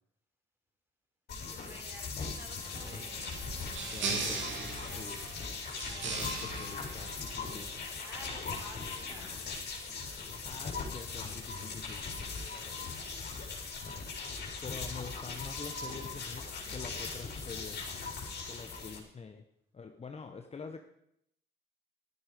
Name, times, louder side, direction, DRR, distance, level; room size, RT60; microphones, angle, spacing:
sound 1, 1.3-19.0, left 4 dB, 55° left, 4.2 m, -40 dB
voice 1, 1.3-3.4 4.8-5.3 5.9-6.4 8.0-9.3 12.1-13.3, equal, 10° right, 0 dB, 5.2 m, -53 dB
sound 2, 2.7-7.8, right 4 dB, 70° right, 2.4 m, -39 dB
voice 2, 3.8-4.5 5.0-5.2 6.0-7.7 10.4-12.0 14.6-17.8 18.5-19.4 19.7-20.8, left 5 dB, 30° left, 5 dB, 1.1 m, -46 dB
12.5 x 12.5 x 5.0 m, 0.74 s
cardioid pair, 90°, 20 cm